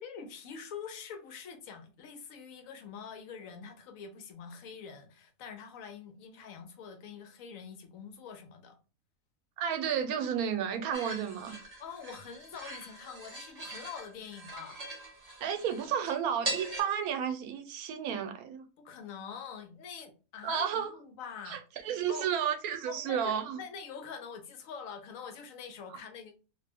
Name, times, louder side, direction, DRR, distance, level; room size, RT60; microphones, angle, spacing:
voice 1, 0.0-8.8 11.8-14.8 18.8-21.6 22.1-22.3 22.8-26.3, left 6 dB, 75° left, 0.9 m, -45 dB
voice 2, 9.6-11.5 15.4-18.6 20.4-20.9 21.4-23.6 25.9-26.0, right 8 dB, 80° right, 1.0 m, -32 dB
sound 1, 10.9-16.8, right 1 dB, 35° right, 0.6 m, -41 dB
2.5 x 2.1 x 3.3 m
omnidirectional pair, 1.5 m